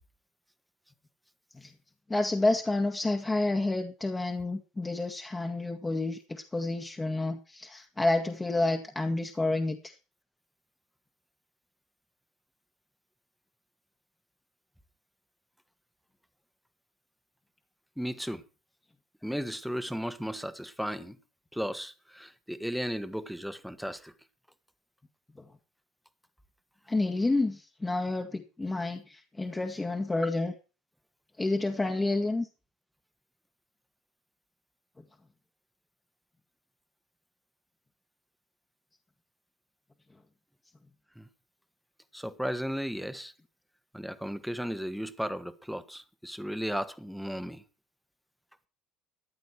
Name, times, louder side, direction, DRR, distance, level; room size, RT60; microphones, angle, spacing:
voice 1, 2.1-10.0 26.9-30.5 31.4-32.5, left 2 dB, 15° left, 2.0 m, -29 dB
voice 2, 18.0-18.4 19.2-21.2 21.5-24.1 41.1-41.3 42.1-43.3 43.9-47.6, equal, ahead, 1.7 m, -35 dB
14.5 x 11.5 x 4.5 m
hypercardioid pair, 65°, 0 cm